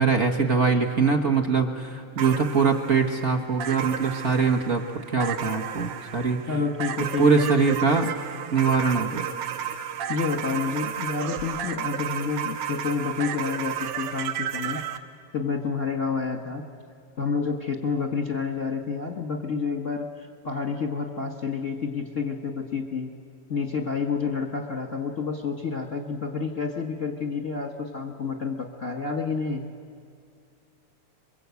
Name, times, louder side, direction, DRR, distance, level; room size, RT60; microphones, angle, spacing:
voice 1, 0.0-4.8 5.1-6.4 7.2-8.1 8.5-9.2, right 5 dB, 45° right, 4 dB, 0.9 m, -22 dB
sound 1, 2.2-15.0, right 9 dB, 75° right, 2.1 m, -33 dB
voice 2, 6.5-7.5 10.1-14.8 15.3-16.6 17.2-23.1 23.5-29.7, left 5 dB, 45° left, 2 dB, 1.0 m, -29 dB
28.5 x 22.5 x 8.3 m, 2.3 s
omnidirectional pair, 3.3 m